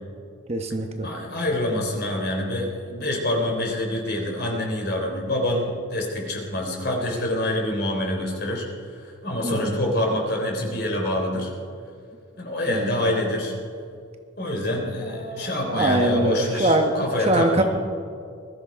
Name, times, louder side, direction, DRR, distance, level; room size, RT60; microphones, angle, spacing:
voice 1, 0.5-1.1 9.4-9.8 12.7-12.9 15.1-17.6, right 1 dB, 30° right, 4 dB, 1.1 m, -23 dB
voice 2, 1.0-8.7 8.9-11.5 12.4-13.5 14.4-17.6, left 1 dB, 50° left, 0 dB, 3.5 m, -26 dB
21.0 x 13.5 x 5.2 m, 2.3 s
head